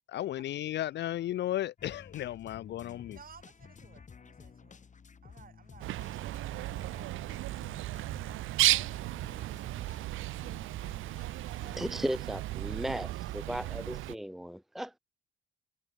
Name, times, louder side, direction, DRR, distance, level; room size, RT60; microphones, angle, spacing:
voice 1, 0.1-3.2, left 13 dB, 60° left, 0.5 m, -34 dB
sound 1, 1.8-11.9, left 6 dB, 40° left, 2.7 m, -54 dB
voice 2, 3.1-4.8 5.2-8.4, right 7 dB, 45° right, 4.3 m, -59 dB
Bird, 5.8-14.2, right 16 dB, 85° right, 1.0 m, -34 dB
voice 3, 11.6-15.0, equal, ahead, 0.8 m, -36 dB
cardioid pair, 90°, 20 cm